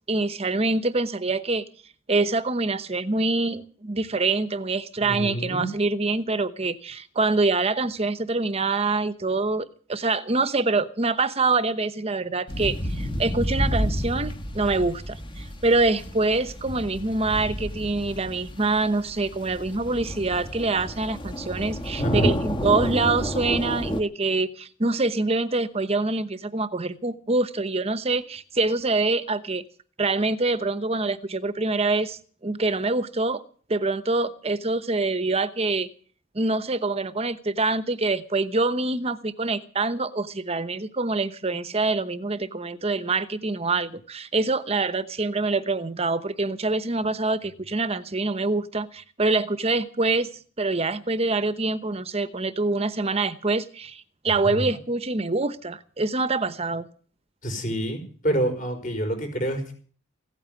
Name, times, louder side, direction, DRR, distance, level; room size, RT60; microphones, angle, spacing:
voice 1, 0.1-1.6 2.1-29.6 30.0-33.4 33.7-35.9 36.3-56.9, right 3 dB, 30° right, 13 dB, 0.9 m, -25 dB
voice 2, 5.0-5.7 22.0-22.3 54.4-54.7 57.4-58.0 58.2-59.7, right 1 dB, 40° left, 6 dB, 5.1 m, -27 dB
sound 1, 12.5-24.0, equal, 25° left, 1.4 m, -30 dB
16.0 x 9.0 x 9.4 m, 0.44 s
head